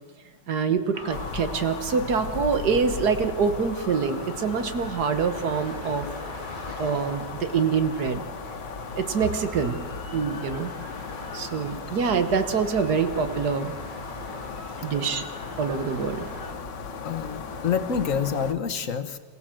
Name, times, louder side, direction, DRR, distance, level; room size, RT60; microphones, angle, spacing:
voice 1, 0.5-6.1 6.8-8.2 8.9-9.8 10.1-10.7 11.3-13.7 14.8-15.2 15.6-16.3, right 5 dB, 60° right, 9 dB, 1.8 m, -25 dB
sound 1, 0.9-16.5, left 2 dB, 25° left, 2.6 m, -42 dB
sound 2, 1.1-18.5, left 5 dB, 70° left, 1.9 m, -37 dB
voice 2, 14.4-14.9 16.9-19.2, left 7 dB, 50° left, 9 dB, 1.4 m, -29 dB
27.0 x 16.0 x 7.7 m, 1.4 s
omnidirectional pair, 2.0 m